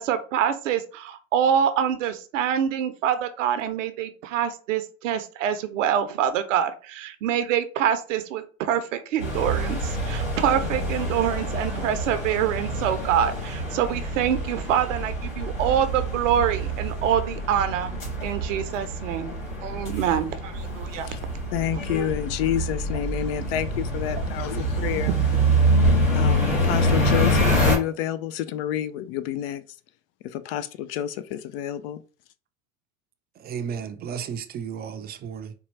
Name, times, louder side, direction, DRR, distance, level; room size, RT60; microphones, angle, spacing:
voice 1, 0.0-17.9 18.2-19.3 19.6-21.1, right 9 dB, 70° right, 0.7 m, -25 dB
sound 1, 9.2-27.8, right 1 dB, 90° left, 1.9 m, -26 dB
voice 2, 21.5-25.1 26.1-29.6 30.3-32.0, left 11 dB, 50° left, 0.4 m, -29 dB
voice 3, 33.4-35.5, right 7 dB, 25° right, 0.5 m, -33 dB
4.3 x 2.3 x 3.2 m
hypercardioid pair, 90°, 39 cm